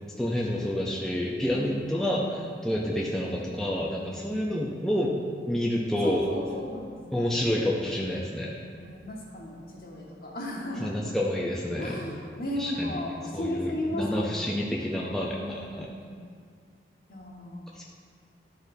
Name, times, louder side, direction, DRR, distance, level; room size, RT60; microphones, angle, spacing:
voice 1, 0.2-5.1 5.5-6.2 7.1-8.6 10.8-12.0 12.6-13.0 13.3-15.9 17.8-17.9, left 1 dB, 5° left, -4 dB, 0.4 m, -29 dB
voice 2, 1.5-1.9 6.0-7.0 7.3-7.4 8.7-10.9 11.8-14.8 15.4-16.2 17.1-17.7, left 1 dB, 55° left, -3 dB, 1.3 m, -35 dB
12.0 x 4.3 x 2.6 m, 2.1 s
head